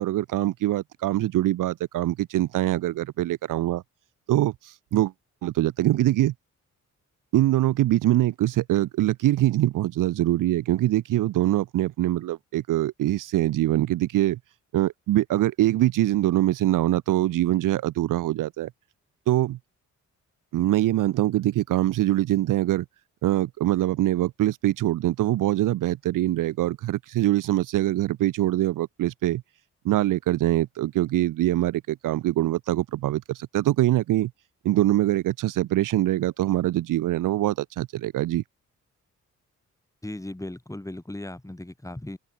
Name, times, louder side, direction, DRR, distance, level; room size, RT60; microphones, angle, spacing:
voice 1, 0.0-3.8 4.3-5.1 5.4-6.3 7.3-14.4 14.7-18.7 19.3-19.6 20.5-22.8 23.2-29.4 29.8-34.3 34.6-38.4, right 14 dB, 80° right, 0.7 m, -23 dB
voice 2, 40.0-42.2, left 1 dB, 10° left, 6.2 m, -37 dB
cardioid pair, 75°, 32 cm